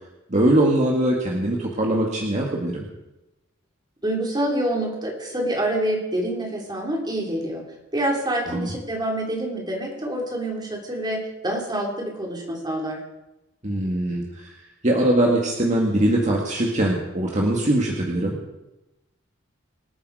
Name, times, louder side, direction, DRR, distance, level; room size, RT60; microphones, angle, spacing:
voice 1, 0.3-2.8 8.5-8.7 13.6-14.5 14.8-18.4, right 1 dB, 35° right, -1 dB, 2.0 m, -22 dB
voice 2, 4.0-7.6 7.9-13.0, right 1 dB, 20° right, -1 dB, 3.5 m, -26 dB
25.5 x 8.6 x 4.9 m, 0.98 s
head